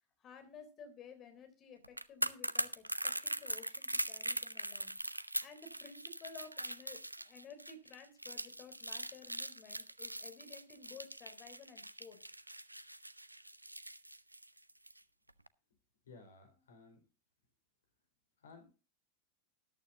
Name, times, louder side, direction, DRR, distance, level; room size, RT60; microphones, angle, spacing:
voice 1, 0.2-5.0 5.4-12.2, left 5 dB, 30° left, 7 dB, 3.8 m, -54 dB
sound 1, 1.8-15.0 15.3-15.5, right 1 dB, 85° right, 0.6 m, -41 dB
voice 2, 16.0-17.0 18.4-18.7, left 3 dB, 65° left, 5 dB, 4.9 m, -57 dB
13.5 x 11.5 x 2.8 m, 0.32 s
figure-of-eight pair, 90°, 0 cm